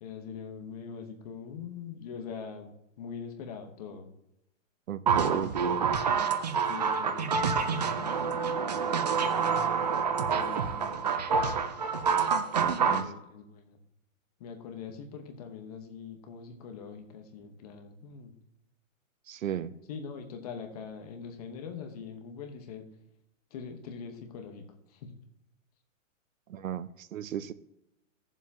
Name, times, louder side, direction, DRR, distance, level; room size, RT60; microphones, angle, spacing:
voice 1, 0.0-4.1 5.1-5.5 6.7-8.5 10.3-11.1 12.7-13.8 14.4-18.4 19.9-22.9 23.5-25.1, left 6 dB, 30° left, 5 dB, 1.1 m, -43 dB
voice 2, 4.9-5.9 12.6-13.1 19.3-19.7 26.5-27.5, right 10 dB, 80° right, 15 dB, 0.8 m, -35 dB
sound 1, 5.1-13.0, right 6 dB, 35° right, 0.4 m, -27 dB
16.0 x 7.3 x 2.8 m, 0.84 s
hypercardioid pair, 170°, 40 cm